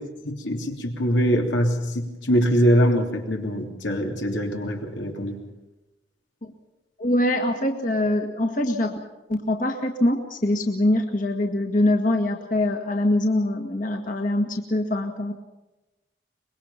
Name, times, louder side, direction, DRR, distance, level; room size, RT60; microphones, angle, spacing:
voice 1, 0.2-5.4, equal, 90° left, 2 dB, 3.4 m, -23 dB
voice 2, 7.0-9.0 9.3-15.3, left 1 dB, 45° left, 3 dB, 1.8 m, -23 dB
24.5 x 21.5 x 5.8 m, 1.0 s
head